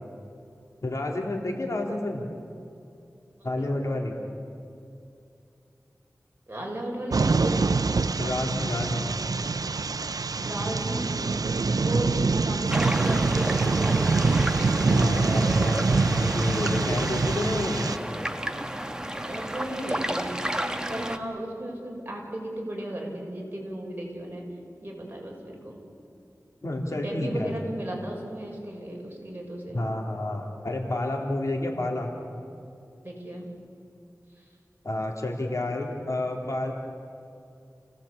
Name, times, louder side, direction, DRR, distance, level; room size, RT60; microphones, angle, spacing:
voice 1, 0.8-2.3 3.4-4.2 8.2-9.1 14.9-17.9 26.6-27.5 29.7-32.1 34.8-36.7, left 1 dB, 55° left, 1 dB, 3.5 m, -29 dB
voice 2, 6.5-7.6 10.4-11.3 11.7-14.2 19.2-20.4 20.9-24.4 24.8-25.8 26.9-29.8 33.0-33.5, right 1 dB, 30° right, -2 dB, 6.8 m, -35 dB
sound 1, 7.1-18.0, right 4 dB, 85° right, 0.6 m, -25 dB
sound 2, 12.7-21.2, right 1 dB, 10° right, 1.5 m, -32 dB
29.0 x 18.0 x 8.7 m, 2.6 s
wide cardioid pair, 60°, 6 cm